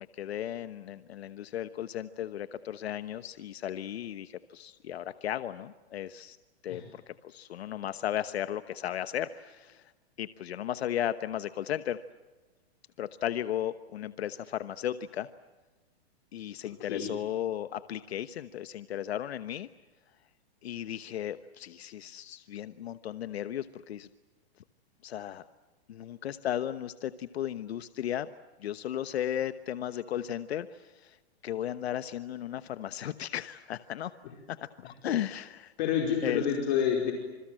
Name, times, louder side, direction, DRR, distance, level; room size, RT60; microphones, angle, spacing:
voice 1, 0.0-6.4 6.6-9.8 10.2-12.0 13.0-15.3 16.3-19.7 20.6-24.1 25.0-25.4 25.9-28.3 28.6-31.2 31.4-34.1 34.5-35.7 36.2-36.4, left 11 dB, 70° left, 12 dB, 1.1 m, -35 dB
voice 2, 35.8-37.1, left 8 dB, 45° left, 1 dB, 4.8 m, -28 dB
28.0 x 27.0 x 7.7 m, 1.2 s
hypercardioid pair, 165°, 32 cm